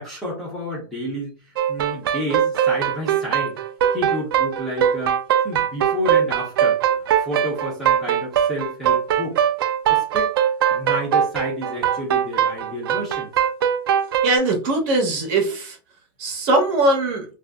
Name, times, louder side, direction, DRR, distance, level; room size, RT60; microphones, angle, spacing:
voice 1, 0.0-1.3 1.7-3.6 3.9-5.2 5.4-6.8 7.2-9.4 9.9-10.3 10.7-13.3, equal, ahead, -8 dB, 0.7 m, -30 dB
sound 1, 1.6-14.3, right 9 dB, 80° right, 0.4 m, -21 dB
voice 2, 14.2-15.8 16.2-17.3, right 2 dB, 35° right, 2 dB, 0.9 m, -20 dB
2.5 x 2.0 x 3.4 m, 0.35 s
supercardioid pair, 170°, 12 cm